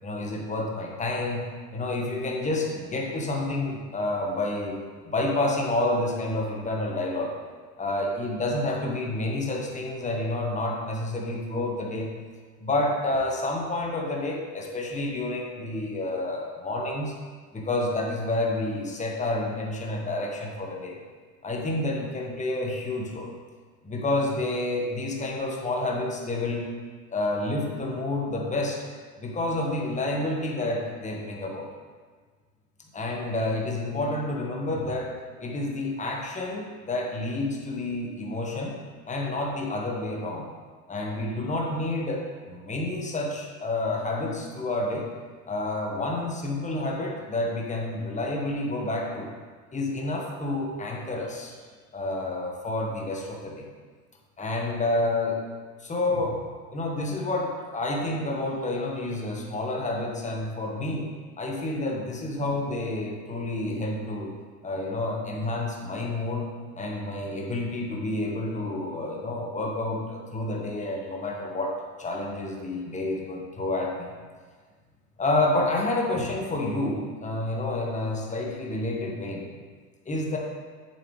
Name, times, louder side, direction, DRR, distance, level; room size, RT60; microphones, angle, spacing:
voice 1, 0.0-1.4 1.7-4.8 5.0-7.3 7.8-12.1 12.6-17.1 17.5-20.9 21.4-23.3 23.8-26.7 27.1-28.8 29.2-31.7 32.9-35.1 35.4-38.7 39.1-40.5 40.9-45.1 45.5-49.3 49.7-51.5 51.9-53.7 54.4-55.4 55.8-56.4 56.7-61.1 61.4-64.3 64.6-66.5 66.8-71.7 72.0-74.1 75.2-79.5 80.0-80.4, left 2 dB, 15° left, -1 dB, 1.4 m, -29 dB
7.6 x 7.0 x 3.3 m, 1.5 s
hypercardioid pair, 90°, 49 cm